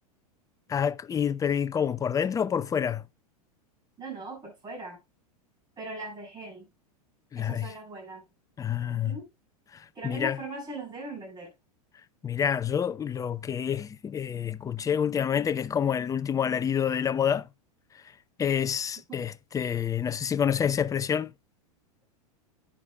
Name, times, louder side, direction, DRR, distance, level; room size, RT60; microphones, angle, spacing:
voice 1, 0.7-3.0 7.3-7.7 8.6-9.2 9.7-10.4 12.2-17.5 18.4-21.3, left 8 dB, 15° left, 0.6 m, -28 dB
voice 2, 4.0-5.0 5.8-6.7 7.4-8.2 8.9-9.3 9.9-11.5 19.1-19.2, right 2 dB, 20° right, 7.4 m, -39 dB
11.0 x 9.8 x 2.3 m
hypercardioid pair, 105°, 20 cm